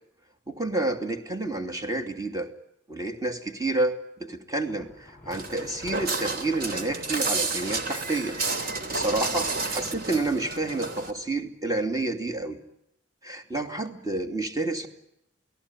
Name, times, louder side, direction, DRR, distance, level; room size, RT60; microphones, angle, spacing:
voice 1, 0.5-2.5 2.9-8.4 8.6-12.6 13.2-14.9, right 2 dB, 20° right, 7 dB, 2.8 m, -29 dB
Thunder, 4.5-11.7, left 1 dB, 10° left, 4.5 m, -51 dB
Walk footsteps, 5.3-11.1, right 3 dB, 55° right, 3.4 m, -31 dB
29.0 x 18.5 x 9.9 m, 0.81 s
head